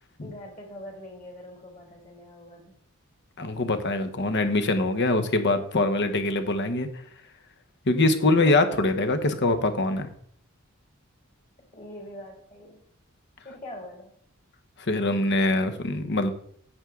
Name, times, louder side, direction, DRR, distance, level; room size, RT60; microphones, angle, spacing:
voice 1, 0.2-2.8 11.6-12.8 13.4-14.1, left 1 dB, 35° left, -1 dB, 2.2 m, -43 dB
voice 2, 3.4-6.9 7.9-10.1 14.8-16.3, left 2 dB, 55° left, 9 dB, 1.0 m, -23 dB
8.8 x 7.6 x 3.7 m, 0.64 s
head